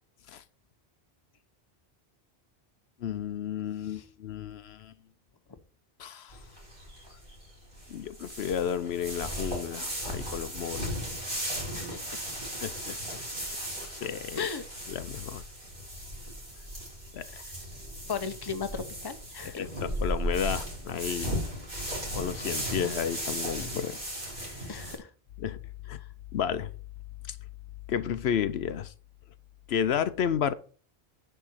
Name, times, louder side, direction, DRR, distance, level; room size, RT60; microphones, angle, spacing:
voice 1, 3.0-4.9 6.0-6.4 7.9-10.9 12.6-13.2 13.9-14.5 14.9-15.4 17.1-17.4 19.5-21.5 22.1-24.0 24.4-24.8 25.4-25.6 25.9-26.0 26.3-26.7 27.3-27.4 27.9-28.9 29.7-30.5, left 8 dB, 75° left, 0.9 m, -32 dB
sound 1, 6.3-25.0, equal, 50° right, 4.9 m, -36 dB
voice 2, 11.7-12.1 14.4-14.6 18.1-19.6 24.7-25.1, left 6 dB, 25° left, 0.7 m, -36 dB
10.0 x 3.6 x 7.2 m
omnidirectional pair, 1.1 m